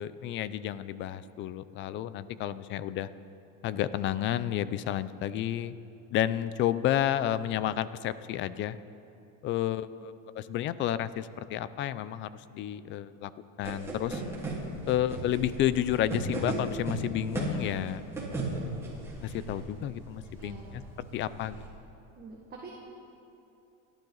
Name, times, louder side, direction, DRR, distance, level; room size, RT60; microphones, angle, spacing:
voice 1, 0.0-3.1 3.6-5.7 6.1-8.8 9.4-13.3 13.6-14.2 14.9-18.0 19.2-20.8 21.1-21.6, left 11 dB, 30° left, 15 dB, 0.4 m, -31 dB
sound 1, 13.6-21.7, right 2 dB, 5° right, 3.5 m, -37 dB
voice 2, 20.4-20.7 22.1-22.7, right 5 dB, 25° right, -3 dB, 1.7 m, -46 dB
29.5 x 12.0 x 3.9 m, 2.8 s
cardioid pair, 155°, 38 cm